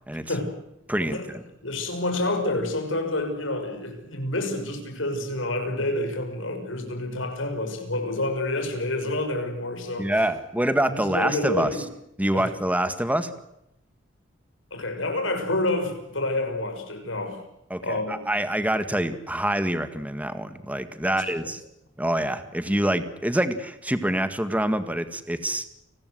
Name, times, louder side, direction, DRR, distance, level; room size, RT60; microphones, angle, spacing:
voice 1, 0.9-1.4 10.0-11.7 12.2-13.3 17.7-21.6 22.0-25.8, right 1 dB, 10° right, 10 dB, 1.8 m, -26 dB
voice 2, 1.6-10.1 10.8-11.8 12.3-12.5 14.7-17.4 17.8-18.2 21.0-21.5, left 2 dB, 80° left, 6 dB, 5.8 m, -28 dB
29.5 x 19.5 x 8.0 m, 0.81 s
head